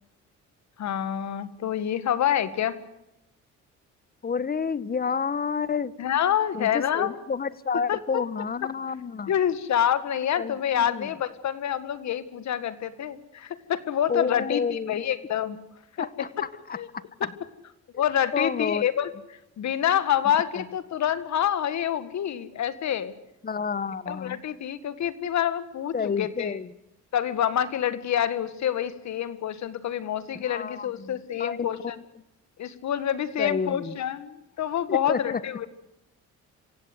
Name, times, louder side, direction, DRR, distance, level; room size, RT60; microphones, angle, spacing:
voice 1, 0.8-2.8 6.0-7.1 7.9-8.2 9.3-15.6 16.0-16.1 16.4-16.5 16.8-16.9 18.0-19.1 19.6-23.1 24.1-26.5 27.1-32.0 32.6-35.7, left 10 dB, 65° left, 14 dB, 1.9 m, -27 dB
voice 2, 4.2-5.9 6.5-9.3 10.4-11.1 14.1-15.1 16.0-17.3 18.3-18.9 20.6-20.7 23.4-24.4 25.9-26.7 30.3-31.8 33.4-34.0 34.9-35.4, left 5 dB, 30° left, 18 dB, 1.1 m, -30 dB
27.0 x 16.5 x 8.0 m, 0.90 s
cardioid pair, 90°, 30 cm